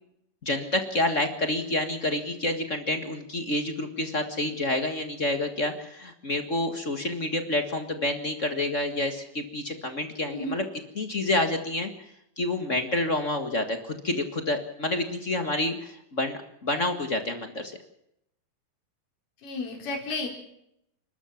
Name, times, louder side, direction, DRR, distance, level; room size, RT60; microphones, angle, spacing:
voice 1, 0.4-10.6 10.9-12.1 12.4-17.7, left 2 dB, 45° left, 7 dB, 0.9 m, -28 dB
voice 2, 19.4-20.4, left 2 dB, 60° left, 0 dB, 5.8 m, -32 dB
29.5 x 13.0 x 7.2 m, 0.78 s
omnidirectional pair, 4.2 m